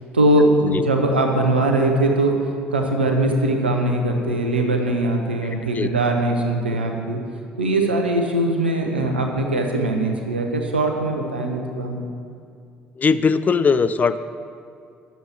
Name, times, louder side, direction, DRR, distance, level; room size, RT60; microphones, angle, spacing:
voice 1, 0.1-2.4 2.7-7.2 7.6-12.1, right 1 dB, 90° right, 2 dB, 0.8 m, -21 dB
voice 2, 13.0-14.2, left 5 dB, 30° left, 13 dB, 0.4 m, -19 dB
9.4 x 7.0 x 4.5 m, 2.3 s
figure-of-eight pair, 55°, 5 cm